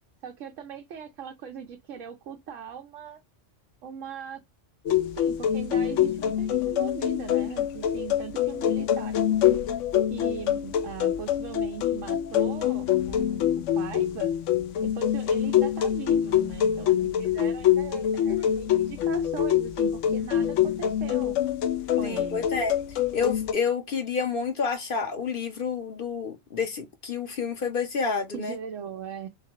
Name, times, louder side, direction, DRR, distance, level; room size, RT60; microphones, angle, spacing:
voice 1, 0.2-3.2 3.8-4.4 4.9-9.4 10.1-14.3 14.8-21.4 21.9-22.5 28.3-29.3, right 7 dB, 90° right, 1.0 m, -39 dB
sound 1, 4.9-23.5, left 10 dB, 80° left, 1.0 m, -25 dB
voice 2, 22.0-22.7 23.1-28.5, left 5 dB, 50° left, 0.8 m, -29 dB
3.8 x 3.2 x 2.8 m
omnidirectional pair, 1.3 m